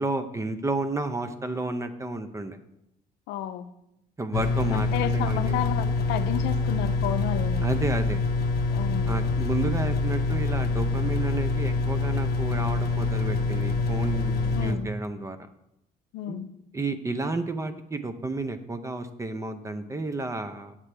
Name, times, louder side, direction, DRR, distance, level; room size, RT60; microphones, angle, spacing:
voice 1, 0.0-2.6 4.2-5.5 7.6-8.2 9.1-15.4 16.3-16.5 16.7-20.7, right 2 dB, 20° right, 9 dB, 0.6 m, -31 dB
voice 2, 3.3-3.7 4.7-7.7 8.7-9.1 14.5-14.9 16.1-16.5, left 11 dB, 85° left, 11 dB, 0.5 m, -32 dB
sound 1, 4.3-14.7, left 3 dB, 65° left, 0.9 m, -26 dB
7.8 x 7.3 x 3.3 m, 0.83 s
cardioid pair, 110°, 17 cm